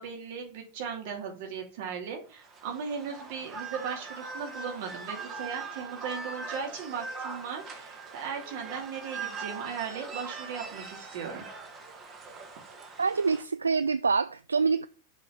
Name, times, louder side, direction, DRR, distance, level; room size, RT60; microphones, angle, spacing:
voice 1, 0.0-11.4, right 6 dB, 50° right, 2.8 m, -37 dB
sound 1, 2.3-13.4, right 4 dB, 25° right, 2.1 m, -41 dB
voice 2, 13.0-14.9, right 5 dB, 75° right, 0.3 m, -26 dB
6.3 x 5.3 x 7.0 m
figure-of-eight pair, 90°, 0 cm